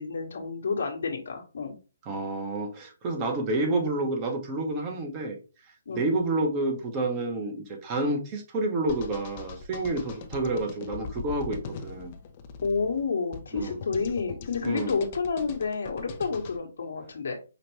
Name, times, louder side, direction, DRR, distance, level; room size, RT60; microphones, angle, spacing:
voice 1, 0.0-1.8 5.9-6.1 12.6-17.3, left 5 dB, 65° left, 0 dB, 1.2 m, -30 dB
voice 2, 2.0-5.4 5.9-12.1 13.5-13.8 14.6-15.0, right 2 dB, 25° right, 4 dB, 1.1 m, -29 dB
sound 1, 8.9-16.6, left 5 dB, 35° left, 0.6 m, -41 dB
5.1 x 2.5 x 3.1 m, 0.32 s
hypercardioid pair, 150°, 0 cm